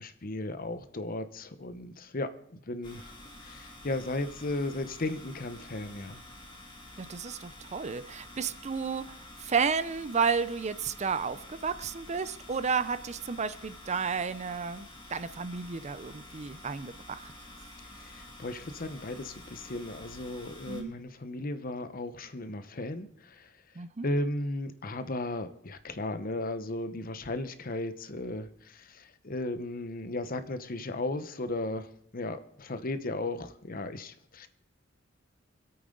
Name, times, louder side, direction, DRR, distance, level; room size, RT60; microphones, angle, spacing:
voice 1, 0.0-6.2 17.9-23.6 24.0-34.5, left 2 dB, 45° left, 10 dB, 0.9 m, -36 dB
sound 1, 2.8-20.8, left 1 dB, 25° left, 2.4 m, -49 dB
voice 2, 7.0-17.3 20.7-20.9 23.8-24.1, right 5 dB, 35° right, 15 dB, 0.5 m, -32 dB
26.0 x 8.7 x 3.8 m, 0.65 s
head